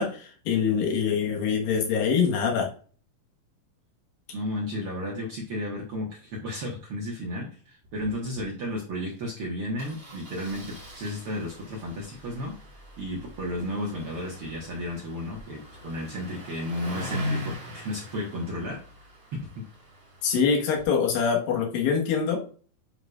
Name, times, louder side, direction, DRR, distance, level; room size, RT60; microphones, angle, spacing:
voice 1, 0.0-2.7 20.2-22.4, left 6 dB, 75° left, 0 dB, 3.0 m, -24 dB
voice 2, 4.3-12.5 13.0-18.8, left 1 dB, 60° right, -2 dB, 1.4 m, -33 dB
Engine starting, 7.8-8.1 8.4-8.5 8.7-8.9 9.8-20.8, left 1 dB, 30° right, 1.1 m, -41 dB
9.6 x 4.8 x 2.4 m, 0.43 s
omnidirectional pair, 4.3 m